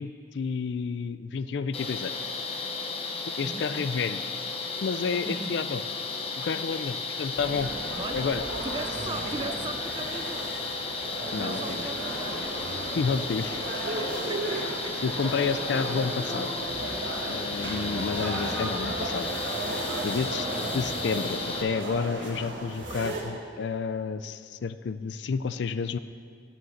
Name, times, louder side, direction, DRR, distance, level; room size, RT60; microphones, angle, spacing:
voice 1, 0.0-2.2 3.4-4.2 4.8-5.8 6.4-7.7 8.1-8.4 11.3-11.9 13.0-13.6 15.0-16.5 17.2-19.3 19.7-20.5 20.7-26.0, left 5 dB, 65° left, 13 dB, 0.4 m, -30 dB
sound 1, 1.7-21.6, left 4 dB, 30° left, 0.8 m, -34 dB
voice 2, 3.4-3.9 5.3-5.7 7.9-8.3 8.6-10.6 11.2-12.5 14.0-15.4, right 3 dB, 25° right, 9 dB, 0.4 m, -39 dB
sound 2, 4.7-5.2 5.6-6.1 6.6-7.0 7.5-8.0 8.4-8.9 9.4-9.9 10.3-10.8 11.2-11.7 12.2-12.7 13.1-13.6 14.1-14.5 15.0-15.5 15.9-16.4 16.9-17.4, left 6 dB, 5° left, 0.9 m, -54 dB
sound 3, 7.3-23.2, right 2 dB, 75° right, 1.7 m, -34 dB
9.6 x 6.4 x 7.2 m, 2.5 s
head